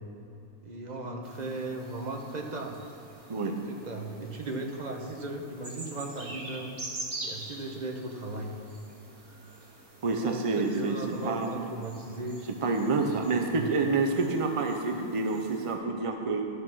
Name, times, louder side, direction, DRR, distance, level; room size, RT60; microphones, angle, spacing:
voice 1, 0.6-2.8 3.4-6.8 7.2-8.5 10.1-12.3 12.8-13.7, right 2 dB, 35° right, 2 dB, 0.9 m, -37 dB
sound 1, 1.2-15.7, right 2 dB, 80° right, 3.0 m, -46 dB
voice 2, 10.0-11.5 12.6-16.4, right 3 dB, 50° right, 3 dB, 0.4 m, -28 dB
12.5 x 6.5 x 6.2 m, 2.8 s
omnidirectional pair, 1.6 m